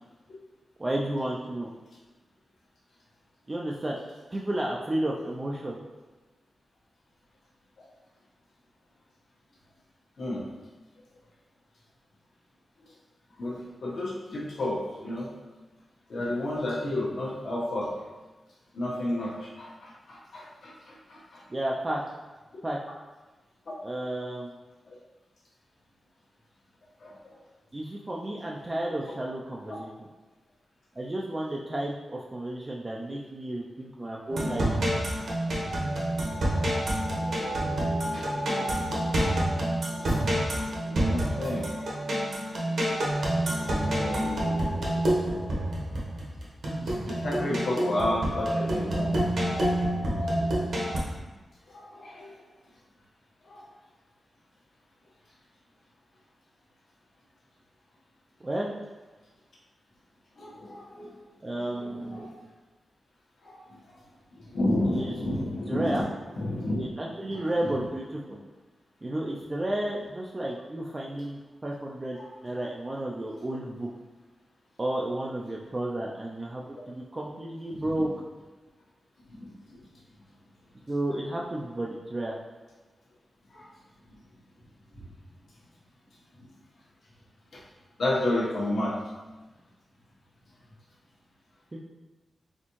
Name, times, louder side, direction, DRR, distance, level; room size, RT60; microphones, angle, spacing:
voice 1, 0.8-1.7 3.5-4.0 4.3-5.8 21.5-22.0 22.6-22.8 23.8-24.6 27.7-29.9 31.0-34.7 58.4-58.7 61.4-62.4 64.9-65.1 65.7-66.1 66.8-68.4 69.0-73.9 74.8-78.1 80.9-82.4 91.7-91.8, right 1 dB, 20° right, -2 dB, 0.3 m, -32 dB
voice 2, 13.4-15.3 16.1-17.9 18.7-21.4 23.7-23.8 24.9-25.0 27.0-27.3 38.1-38.3 40.5-40.6 40.9-41.9 42.5-44.3 46.8-49.1 51.7-52.4 53.4-53.7 60.4-61.1 61.7-62.3 63.4-63.9 64.4-66.1 66.3-66.8 67.3-67.7 72.1-72.2 77.8-77.9 79.3-79.8 83.5-83.7 84.9-85.0 87.5-87.6 88.0-89.0, left 1 dB, 65° left, -5 dB, 1.1 m, -32 dB
sound 1, 34.3-51.0, right 1 dB, 65° right, 1.0 m, -28 dB
4.2 x 3.5 x 3.0 m, 1.2 s
wide cardioid pair, 140°, 0 cm